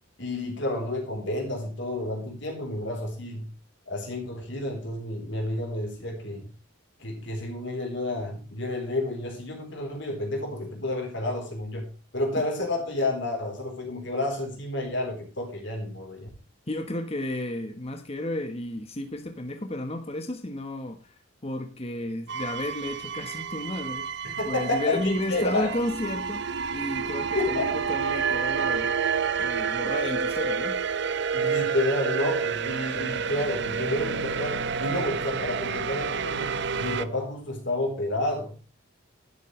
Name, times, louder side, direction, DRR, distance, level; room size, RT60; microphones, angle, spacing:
voice 1, 0.2-3.5 3.9-6.5 7.0-11.9 12.1-16.3 24.2-25.7 27.3-27.8 31.3-36.5 36.8-38.7, left 1 dB, 60° left, 2 dB, 3.9 m, -30 dB
voice 2, 16.7-28.9 29.4-30.8, left 1 dB, 30° left, 6 dB, 1.3 m, -32 dB
sound 1, 22.3-37.0, right 6 dB, 55° right, 0.8 m, -29 dB
12.0 x 11.5 x 3.2 m, 0.35 s
head